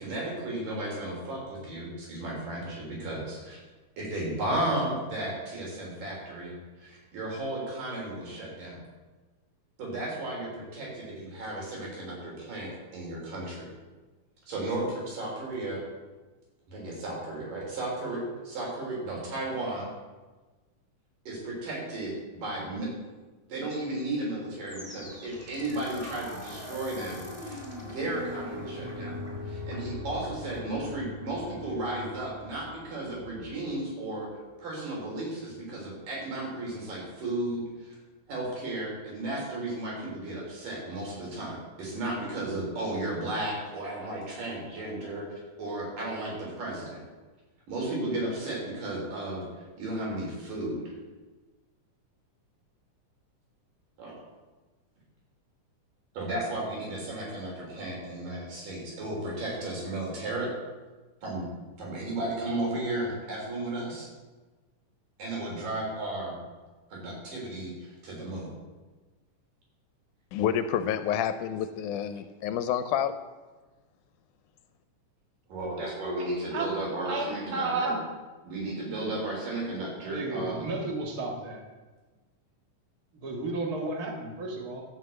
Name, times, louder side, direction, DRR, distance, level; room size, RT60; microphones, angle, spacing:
voice 1, 0.0-3.6 4.0-8.8 9.8-13.7 14.5-15.8 16.7-19.9 21.3-22.9 23.5-29.2 29.5-34.3 34.6-38.0 38.3-45.3 45.6-47.0 47.7-49.4 49.8-50.8 54.0-54.1 56.2-60.5 61.2-61.5 61.8-64.1 65.2-66.4 66.9-68.5 75.5-77.9 78.4-80.7, right 1 dB, 75° right, -3 dB, 5.5 m, -34 dB
sound 1, 24.7-33.8, left 1 dB, 5° right, 2.2 m, -41 dB
voice 2, 70.3-73.1, left 9 dB, 80° left, 11 dB, 2.0 m, -28 dB
voice 3, 76.2-76.7 77.0-77.3 77.5-78.0 80.1-81.6 83.2-84.8, right 3 dB, 35° right, 1 dB, 1.9 m, -32 dB
13.5 x 6.3 x 7.9 m, 1.3 s
omnidirectional pair, 3.8 m